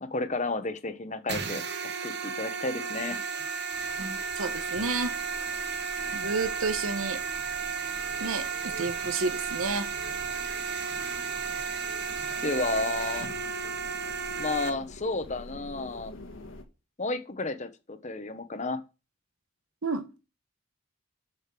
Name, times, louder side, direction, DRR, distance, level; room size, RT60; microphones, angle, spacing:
voice 1, 0.0-3.2 12.4-13.3 14.4-16.2 17.0-18.8, left 2 dB, 35° left, 1.0 m, -32 dB
sound 1, 1.3-14.7, right 5 dB, 50° right, 1.4 m, -33 dB
sound 2, 3.7-16.6, left 1 dB, 65° left, 1.6 m, -47 dB
voice 2, 4.4-5.2 6.1-7.2 8.2-9.9 19.8-20.2, right 3 dB, 80° right, 1.3 m, -31 dB
6.7 x 6.4 x 7.6 m
head